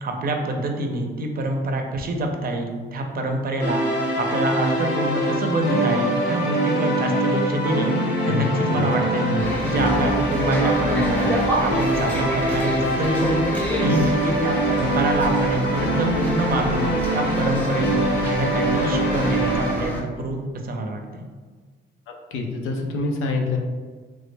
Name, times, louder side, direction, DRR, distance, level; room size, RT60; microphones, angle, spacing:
voice 1, 0.0-3.8 4.2-7.9 8.2-9.3 9.6-13.4 13.8-16.8 17.1-20.4 20.7-21.2, right 2 dB, 50° right, 3 dB, 0.6 m, -26 dB
sound 1, 3.6-19.7, right 1 dB, 65° left, 0.9 m, -23 dB
voice 2, 8.2-8.9 9.2-9.4 22.1-23.6, left 3 dB, 85° left, 2 dB, 0.6 m, -27 dB
sound 2, 9.4-20.0, equal, 5° left, 0.7 m, -29 dB
3.3 x 2.1 x 3.2 m, 1.4 s
cardioid pair, 90°, 20 cm